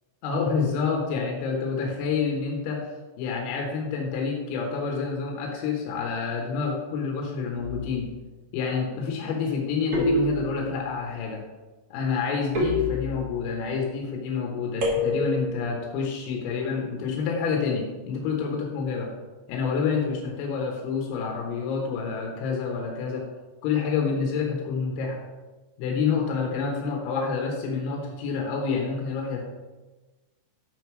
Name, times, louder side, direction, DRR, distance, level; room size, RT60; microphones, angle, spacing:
voice 1, 0.2-2.9 3.2-8.1 8.5-11.4 11.9-19.1 19.5-23.3 23.6-25.2 25.8-29.4, left 5 dB, 90° left, 0 dB, 3.8 m, -28 dB
sound 1, 7.5-8.1 9.9-10.9 12.5-13.5 14.8-15.5, left 1 dB, 70° right, 1.3 m, -27 dB
9.1 x 4.7 x 5.9 m, 1.2 s
omnidirectional pair, 5.8 m